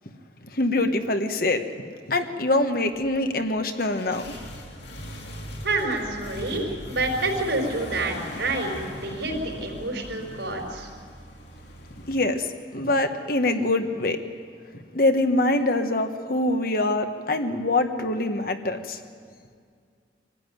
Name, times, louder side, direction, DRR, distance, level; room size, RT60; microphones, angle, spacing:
voice 1, 0.5-1.6 2.1-4.2 12.0-12.5 12.7-14.2 14.9-19.0, left 2 dB, 50° left, 6 dB, 1.4 m, -24 dB
sound 1, 2.9-12.2, equal, 65° left, 3.5 m, -40 dB
voice 2, 5.6-10.9, right 2 dB, 80° right, 2 dB, 4.8 m, -28 dB
24.5 x 14.5 x 9.4 m, 2.2 s
head